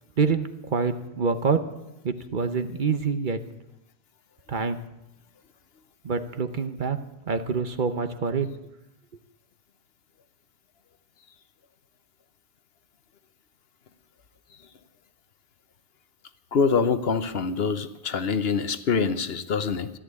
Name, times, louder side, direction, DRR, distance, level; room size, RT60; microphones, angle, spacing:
voice 1, 0.2-1.6 2.0-3.4 4.5-4.8 6.0-7.0 7.3-8.5, right 5 dB, 50° right, 9 dB, 1.0 m, -26 dB
voice 2, 16.5-19.9, left 5 dB, 65° left, 11 dB, 1.1 m, -25 dB
13.5 x 11.5 x 8.3 m, 0.92 s
omnidirectional pair, 1.1 m